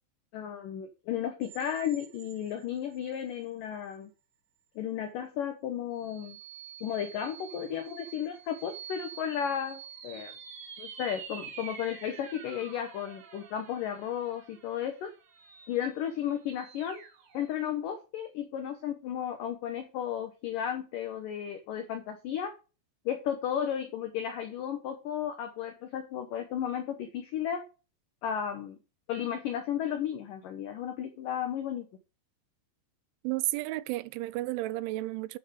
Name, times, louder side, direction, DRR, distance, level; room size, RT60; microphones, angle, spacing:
voice 1, 0.3-4.1 4.8-6.4 6.8-10.3 10.8-15.1 15.7-17.0 17.3-22.5 23.1-27.6 28.2-28.8 29.1-31.9, left 9 dB, 80° left, 1.9 m, -34 dB
sound 1, 1.4-3.4 3.9-4.0 6.0-17.7, right 7 dB, 60° right, 3.1 m, -48 dB
voice 2, 33.2-35.4, right 18 dB, 90° right, 3.0 m, -32 dB
9.7 x 6.0 x 4.8 m
omnidirectional pair, 5.3 m